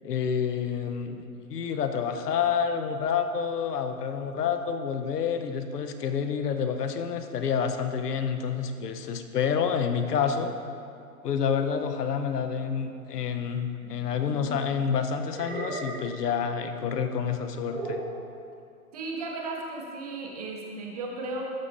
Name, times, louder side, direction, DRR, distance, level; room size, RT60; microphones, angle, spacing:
voice 1, 0.0-10.5 11.2-18.0, left 7 dB, 90° left, 8 dB, 0.8 m, -28 dB
sound 1, 13.8-14.6 15.3-16.2 17.7-18.2, right 2 dB, 80° right, 1.7 m, -36 dB
voice 2, 18.9-21.5, right 2 dB, 25° right, 0 dB, 0.6 m, -35 dB
13.0 x 5.5 x 2.5 m, 2.4 s
hypercardioid pair, 160°, 46 cm